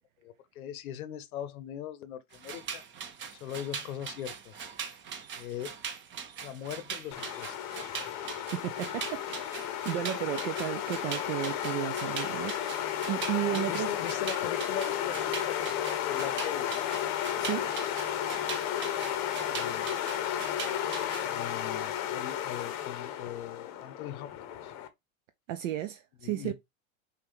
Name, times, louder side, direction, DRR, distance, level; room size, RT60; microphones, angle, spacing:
voice 1, 0.2-2.8 3.4-4.7 5.4-5.8 6.4-7.8 13.5-16.7 19.5-19.9 21.2-24.7 26.2-26.5, left 10 dB, 80° left, 0.8 m, -40 dB
sound 1, 2.3-21.3, right 7 dB, 25° right, 0.7 m, -42 dB
sound 2, 7.1-24.9, left 11 dB, 40° left, 0.7 m, -33 dB
voice 2, 8.5-13.9 17.4-17.7 25.5-26.5, right 14 dB, 65° right, 0.6 m, -34 dB
5.7 x 2.4 x 3.3 m
hypercardioid pair, 120°, 42 cm